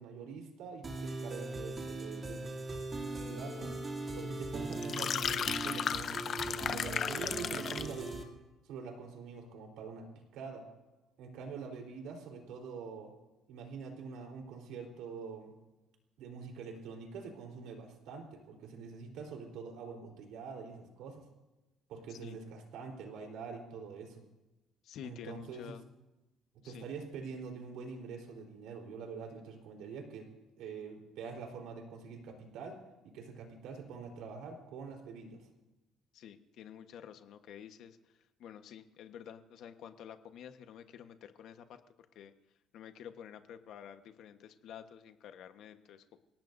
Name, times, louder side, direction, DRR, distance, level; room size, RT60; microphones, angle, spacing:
voice 1, 0.0-2.5 3.0-3.7 4.2-8.2 8.6-10.1 10.3-10.6 11.2-13.1 13.5-15.5 16.2-21.3 21.9-24.2 25.0-25.8 26.6-30.3 30.6-32.8 33.1-35.5, right 5 dB, 75° right, 2 dB, 3.9 m, -45 dB
sound 1, 0.8-8.2, right 2 dB, 25° right, 2.6 m, -40 dB
sound 2, 4.7-8.0, left 8 dB, 40° left, 0.7 m, -35 dB
voice 2, 24.8-25.8 26.6-26.9 36.1-38.0 38.4-41.8 42.1-42.3 42.7-46.0, left 9 dB, 60° left, 8 dB, 1.2 m, -50 dB
28.5 x 18.0 x 2.7 m, 1.0 s
cardioid pair, 145°, 0 cm